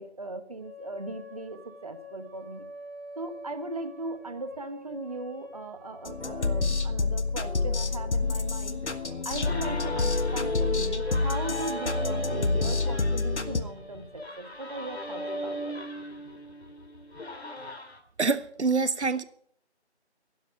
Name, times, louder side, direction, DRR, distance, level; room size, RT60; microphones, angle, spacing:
voice 1, 0.0-2.7 3.2-15.8, right 2 dB, 35° right, 1.4 m, -38 dB
sound 1, 0.6-9.5, left 2 dB, 15° right, 2.2 m, -46 dB
sound 2, 6.0-13.6, left 3 dB, 85° left, 1.5 m, -28 dB
sound 3, 9.4-18.0, left 1 dB, 65° left, 2.9 m, -36 dB
voice 2, 18.2-19.2, right 4 dB, 80° right, 1.1 m, -26 dB
11.5 x 11.0 x 8.2 m
figure-of-eight pair, 170°, 34 cm